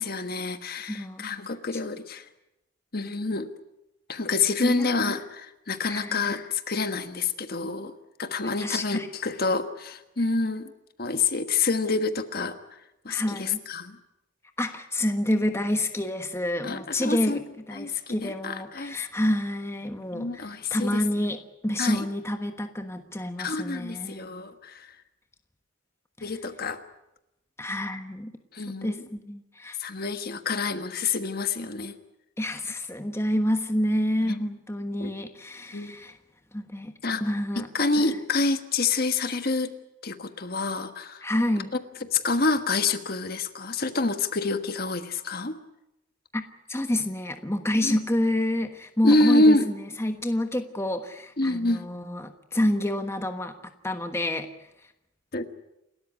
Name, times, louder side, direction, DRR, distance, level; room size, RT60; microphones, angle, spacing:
voice 1, 0.0-2.2 2.9-3.5 4.1-7.9 8.2-10.7 11.0-12.8 13.0-14.0 16.6-17.4 17.7-19.0 20.1-21.0 21.8-22.0 23.4-24.9 26.2-26.8 28.5-29.1 29.8-31.9 34.3-34.5 35.0-35.1 35.7-36.0 37.0-37.2 37.6-39.7 40.0-41.2 41.7-41.8 42.1-45.5 47.8-48.0 49.0-49.7 51.4-51.8 55.3-55.4, left 3 dB, 50° left, 8 dB, 1.5 m, -27 dB
voice 2, 0.9-1.2 4.6-4.9 5.9-6.2 8.6-9.1 13.1-13.6 14.6-24.2 27.6-28.3 28.8-29.8 32.4-36.2 36.5-36.9 37.2-37.7 38.0-38.1 41.2-41.7 46.3-53.5 53.8-54.5, left 1 dB, 15° left, 6 dB, 1.3 m, -28 dB
29.0 x 13.5 x 9.6 m, 0.90 s
head